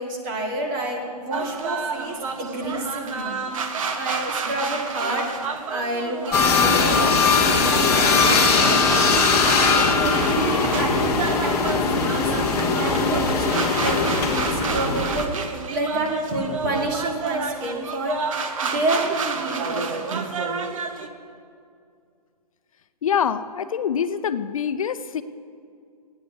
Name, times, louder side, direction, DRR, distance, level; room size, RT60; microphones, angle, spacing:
voice 1, 0.0-3.4 3.9-8.8 9.6-12.2 12.7-15.3 15.7-18.2 18.6-20.0, right 2 dB, 30° right, 0 dB, 2.1 m, -29 dB
sound 1, 1.3-21.1, right 4 dB, 55° right, 1.1 m, -30 dB
sound 2, 6.3-15.3, left 4 dB, 15° left, 1.1 m, -20 dB
voice 2, 23.0-25.2, left 8 dB, 60° left, 12 dB, 0.6 m, -25 dB
15.0 x 9.8 x 5.2 m, 2.4 s
hypercardioid pair, 160°, 20 cm